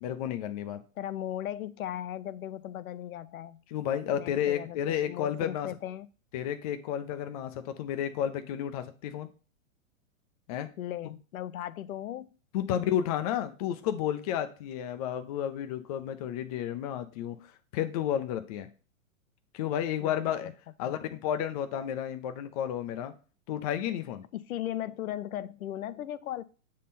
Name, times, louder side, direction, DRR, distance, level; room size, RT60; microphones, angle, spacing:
voice 1, 0.0-0.8 3.7-5.7 6.3-9.3 10.5-10.7 12.5-17.4 17.7-18.7 19.5-20.5 20.8-23.1 23.5-24.2, left 10 dB, 30° left, 0.5 m, -31 dB
voice 2, 1.0-3.6 4.2-6.1 10.8-12.3 20.0-20.5 20.8-20.9 24.3-26.4, left 12 dB, 80° left, 0.6 m, -37 dB
7.4 x 3.8 x 4.2 m
hypercardioid pair, 140°, 42 cm